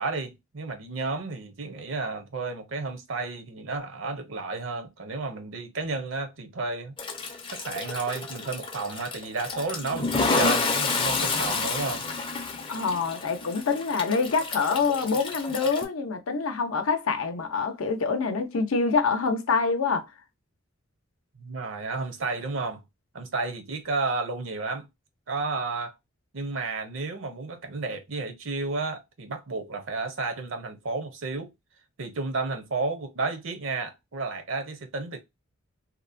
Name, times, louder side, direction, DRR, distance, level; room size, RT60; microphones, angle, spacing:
voice 1, 0.0-7.0 7.5-12.0 21.4-22.8 23.1-24.9 25.3-25.9 26.3-31.5 32.0-35.2, right 3 dB, 70° right, 0.7 m, -32 dB
Toilet flush, 7.0-15.8, left 4 dB, 25° left, 0.4 m, -30 dB
voice 2, 12.7-20.0, left 4 dB, 90° left, 0.6 m, -26 dB
2.9 x 2.1 x 2.5 m
head